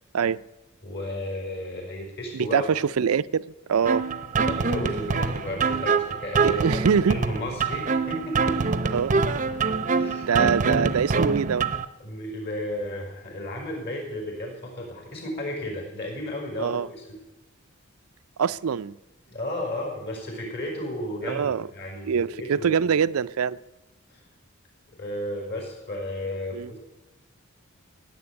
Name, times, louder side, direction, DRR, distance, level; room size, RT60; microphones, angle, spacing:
voice 1, 0.8-2.7 4.4-6.8 7.1-8.8 9.9-10.3 12.0-17.2 19.3-22.8 24.1-24.2 25.0-26.8, left 1 dB, 50° left, 5.4 m, -33 dB
voice 2, 2.3-4.0 6.4-7.2 8.9-9.2 10.3-11.7 16.6-16.9 18.4-19.0 21.2-21.7 22.1-23.6 26.5-26.7, right 6 dB, 80° right, 0.4 m, -24 dB
sound 1, 3.9-11.9, right 4 dB, 35° right, 0.6 m, -25 dB
16.5 x 7.9 x 9.8 m
head